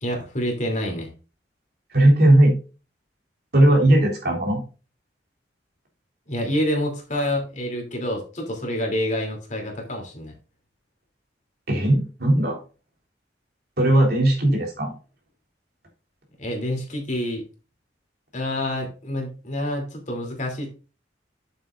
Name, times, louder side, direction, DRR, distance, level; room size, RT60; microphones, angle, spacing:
voice 1, 0.0-1.1 6.3-10.3 16.4-17.4 18.3-20.7, left 1 dB, 45° left, 2 dB, 2.8 m, -27 dB
voice 2, 1.9-2.5 3.5-4.6 11.7-12.6 13.8-14.9, right 1 dB, 60° right, -1 dB, 3.6 m, -17 dB
9.0 x 7.5 x 2.5 m, 0.33 s
head